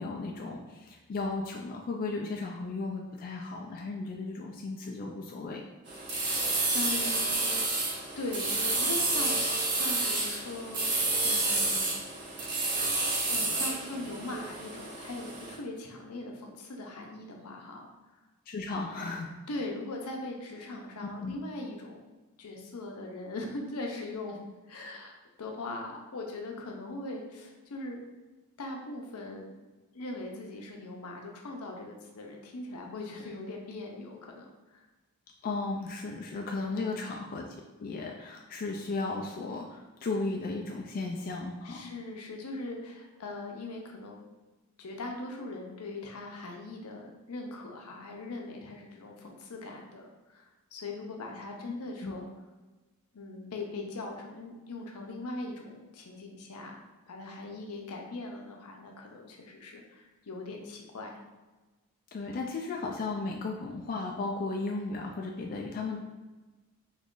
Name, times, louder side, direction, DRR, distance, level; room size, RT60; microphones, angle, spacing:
voice 1, 0.0-5.6 18.5-19.3 21.2-21.3 35.4-37.4 37.8-41.9 52.0-52.1 62.1-66.0, left 3 dB, 40° left, 0 dB, 0.3 m, -35 dB
sound 1, 5.9-15.5, right 2 dB, 50° right, 0.9 m, -30 dB
voice 2, 6.7-7.4 8.2-9.4 9.7-10.9 11.2-11.9 12.6-12.7 13.3-17.9 19.5-22.0 22.4-24.4 24.7-28.0 28.6-29.5 29.9-34.8 36.7-37.0 41.6-44.2 44.8-52.3 53.1-61.2, left 2 dB, 80° left, 1 dB, 0.6 m, -40 dB
3.0 x 2.4 x 3.6 m, 1.2 s
head